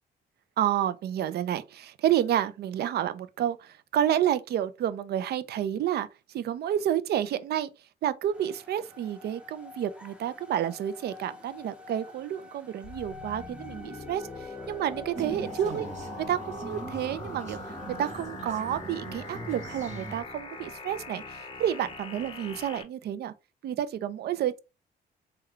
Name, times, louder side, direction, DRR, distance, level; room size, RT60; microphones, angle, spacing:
voice 1, 0.6-6.1 6.3-7.7 8.0-14.3 14.7-15.9 16.2-17.7 18.0-23.3 23.6-24.6, right 10 dB, 65° right, 0.4 m, -30 dB
sound 1, 8.3-18.3, left 3 dB, 5° right, 0.7 m, -47 dB
sound 2, 12.8-22.8, left 3 dB, 30° left, 0.6 m, -42 dB
sound 3, 15.2-20.2, right 3 dB, 40° right, 1.2 m, -41 dB
3.5 x 2.2 x 3.3 m
cardioid pair, 90°, 18 cm